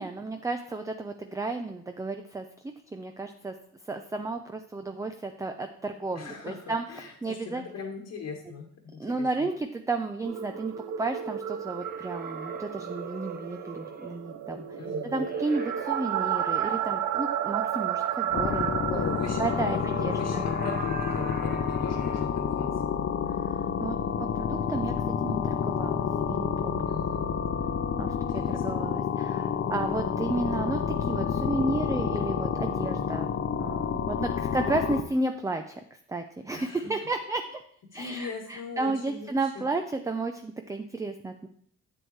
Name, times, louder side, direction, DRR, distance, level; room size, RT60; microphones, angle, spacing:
voice 1, 0.0-3.5 3.9-7.6 9.0-14.8 15.0-19.0 19.4-20.5 23.3-24.9 25.2-27.0 28.0-33.3 33.6-37.6 37.9-41.5, right 3 dB, 10° right, 6 dB, 0.5 m, -33 dB
voice 2, 6.1-9.3 14.8-15.3 18.9-22.7 26.8-27.3 28.2-28.6 34.2-34.7 36.5-36.8 37.9-39.6, left 5 dB, 60° left, 1 dB, 1.3 m, -39 dB
sound 1, 10.2-22.3, right 9 dB, 70° right, 0.6 m, -33 dB
sound 2, 11.8-14.2 15.2-16.8 19.3-22.3, right 4 dB, 30° right, 1.2 m, -43 dB
sound 3, 18.3-35.0, left 7 dB, 45° left, 0.7 m, -29 dB
7.9 x 7.6 x 3.2 m, 0.62 s
cardioid pair, 90°, 30 cm